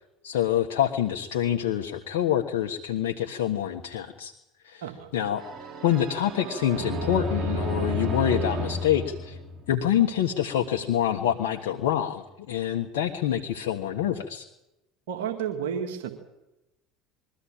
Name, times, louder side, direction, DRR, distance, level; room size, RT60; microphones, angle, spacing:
voice 1, 0.2-4.3 4.6-4.8 5.1-5.4 5.8-9.4 9.7-14.4, left 10 dB, 75° left, 2 dB, 1.4 m, -26 dB
sound 1, 5.4-10.1, equal, 45° right, 3.2 m, -32 dB
voice 2, 15.1-16.1, right 8 dB, 75° right, 4 dB, 2.1 m, -31 dB
23.0 x 14.5 x 8.9 m, 0.94 s
hypercardioid pair, 70°, 0 cm